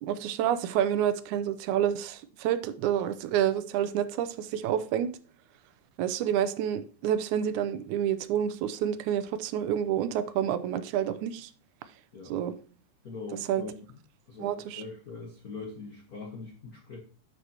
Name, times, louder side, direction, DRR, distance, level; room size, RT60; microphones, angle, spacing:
voice 1, 0.0-5.1 6.0-11.5 12.3-12.5 13.5-13.6 14.4-14.8, right 10 dB, 80° right, 2.0 m, -28 dB
voice 2, 13.0-13.7 14.3-17.0, left 4 dB, 70° left, 0.8 m, -42 dB
11.0 x 5.8 x 2.9 m
omnidirectional pair, 3.6 m